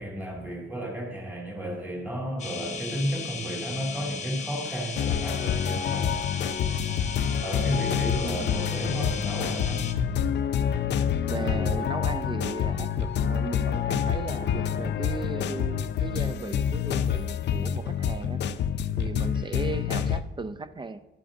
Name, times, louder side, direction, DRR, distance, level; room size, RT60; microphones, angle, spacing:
voice 1, 0.0-6.1 7.4-9.9, equal, 10° right, 2.5 m, -33 dB
sound 1, 2.4-9.9, left 5 dB, 35° left, 0.9 m, -36 dB
sound 2, 5.0-20.2, left 8 dB, 60° left, 0.5 m, -27 dB
voice 2, 8.2-8.6 11.3-18.5 19.0-21.0, right 3 dB, 25° right, 0.4 m, -36 dB
11.5 x 7.6 x 2.7 m
cardioid pair, 90°, 20 cm